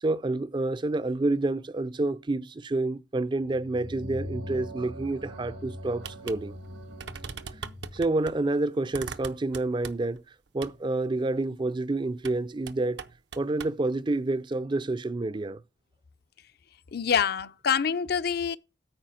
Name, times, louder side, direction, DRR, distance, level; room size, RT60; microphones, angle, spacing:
voice 1, 0.0-6.6 7.9-10.2 10.5-13.1 13.4-15.6, right 2 dB, 25° right, 0.4 m, -28 dB
sound 1, 3.5-8.1, equal, 90° right, 2.4 m, -41 dB
sound 2, 6.0-6.4 6.6-6.7 7.0-8.4 8.9-10.2 10.6-10.8 12.2-12.4 12.7-13.8, right 6 dB, 70° right, 0.7 m, -40 dB
voice 2, 16.9-18.6, left 7 dB, 60° left, 0.5 m, -26 dB
8.9 x 5.0 x 7.6 m
head